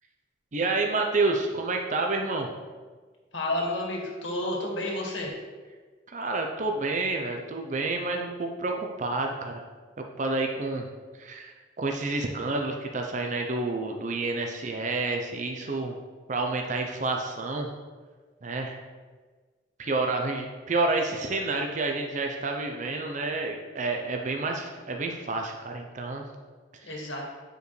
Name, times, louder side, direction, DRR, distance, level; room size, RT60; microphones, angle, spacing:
voice 1, 0.5-2.5 6.1-9.6 10.0-10.9 11.2-16.0 16.3-17.7 18.4-18.8 19.8-26.2, right 3 dB, 40° right, 2 dB, 0.6 m, -29 dB
voice 2, 3.3-5.4 26.8-27.2, left 1 dB, 80° left, -1 dB, 1.7 m, -30 dB
9.0 x 5.1 x 3.2 m, 1.4 s
head